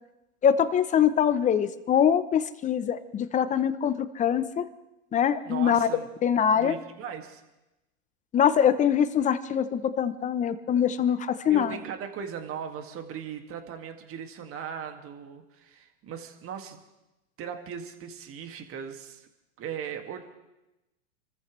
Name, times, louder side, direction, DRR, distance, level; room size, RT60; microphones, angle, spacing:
voice 1, 0.4-4.7 5.1-5.9 6.2-6.8 8.3-11.8, left 8 dB, 15° left, 13 dB, 0.7 m, -23 dB
voice 2, 5.4-6.1 6.5-7.4 11.5-16.8 17.4-19.3 19.6-20.3, right 7 dB, 30° right, 5 dB, 2.1 m, -38 dB
28.5 x 14.0 x 3.2 m, 0.98 s
hypercardioid pair, 125°, 44 cm